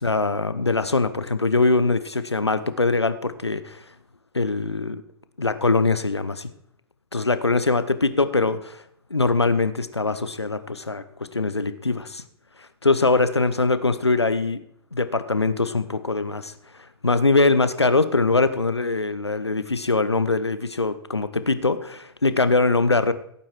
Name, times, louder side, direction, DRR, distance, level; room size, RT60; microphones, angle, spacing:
voice 1, 0.0-3.8 4.3-5.0 5.4-6.5 7.1-8.8 9.1-11.0 11.3-12.2 12.8-14.6 14.9-16.5 17.0-23.1, left 3 dB, 85° left, 13 dB, 1.0 m, -22 dB
16.5 x 8.8 x 4.6 m, 0.72 s
figure-of-eight pair, 105°, 14 cm